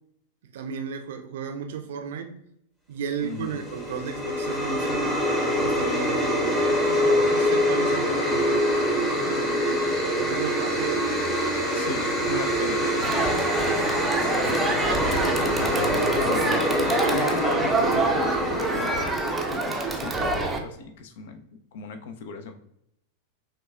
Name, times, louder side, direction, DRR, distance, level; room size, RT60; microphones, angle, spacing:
voice 1, 0.4-2.4 2.9-5.2 5.6-9.8 10.2-11.0, right 7 dB, 55° right, 0.5 m, -34 dB
voice 2, 3.2-3.6 11.7-13.1 13.7-22.5, left 4 dB, 55° left, 0.5 m, -37 dB
sound 1, 3.4-19.8, equal, 15° left, 1.0 m, -25 dB
Crowd, 13.0-20.6, right 2 dB, 10° right, 0.5 m, -26 dB
5.9 x 2.3 x 2.2 m
figure-of-eight pair, 90°, 0 cm